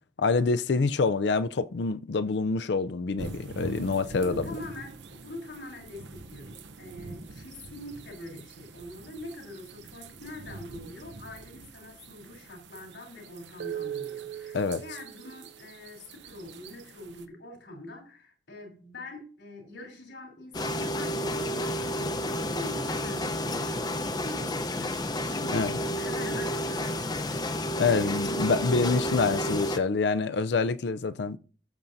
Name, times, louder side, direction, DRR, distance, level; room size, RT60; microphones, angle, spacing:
voice 1, 0.2-4.5 14.5-14.8 25.5-25.7 27.8-31.4, left 4 dB, 65° left, 0.5 m, -26 dB
sound 1, 3.2-17.3, right 5 dB, 75° right, 0.8 m, -43 dB
voice 2, 4.1-25.7 26.0-27.6 27.8-28.2, left 1 dB, 85° left, 3.3 m, -44 dB
sound 2, 20.5-29.8, left 1 dB, 25° left, 0.7 m, -30 dB
19.0 x 7.0 x 2.6 m
head